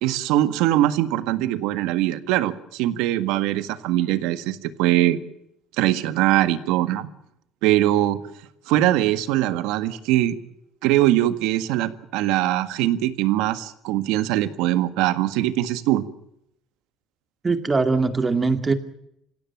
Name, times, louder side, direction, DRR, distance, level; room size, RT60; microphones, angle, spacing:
voice 1, 0.0-5.2 5.8-7.1 7.6-8.2 8.7-10.4 10.8-16.0, right 14 dB, 85° right, 12 dB, 1.7 m, -22 dB
voice 2, 17.4-18.7, right 4 dB, 20° right, 9 dB, 2.3 m, -21 dB
26.5 x 17.0 x 8.9 m, 0.77 s
cardioid pair, 120°, 0 cm